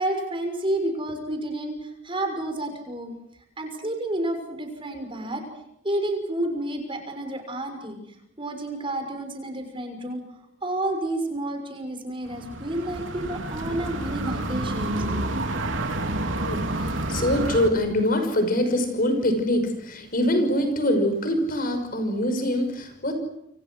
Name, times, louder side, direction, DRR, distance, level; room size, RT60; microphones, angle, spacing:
voice 1, 0.0-3.2 3.6-5.4 5.8-8.0 8.4-10.2 10.6-15.2, right 1 dB, 25° right, 5 dB, 6.2 m, -30 dB
sound 1, 12.3-17.7, right 2 dB, 90° right, 3.3 m, -29 dB
voice 2, 16.4-23.1, left 1 dB, 45° left, 7 dB, 5.8 m, -24 dB
29.0 x 27.5 x 6.4 m, 0.81 s
head